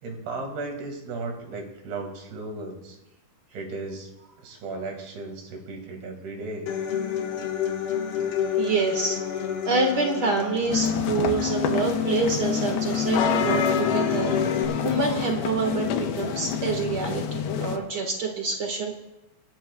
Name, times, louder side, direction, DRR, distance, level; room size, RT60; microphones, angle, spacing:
voice 1, 0.0-3.0 3.5-4.1 4.4-6.7, right 3 dB, 90° right, 3 dB, 4.0 m, -35 dB
Human voice / Acoustic guitar, 6.7-14.6, left 8 dB, 65° left, 1.4 m, -30 dB
voice 2, 8.6-9.2 9.6-19.0, right 4 dB, 65° right, 2 dB, 1.0 m, -27 dB
sound 1, 10.7-17.8, left 7 dB, 85° left, 2.8 m, -26 dB
25.0 x 12.5 x 2.3 m, 0.93 s
omnidirectional pair, 4.5 m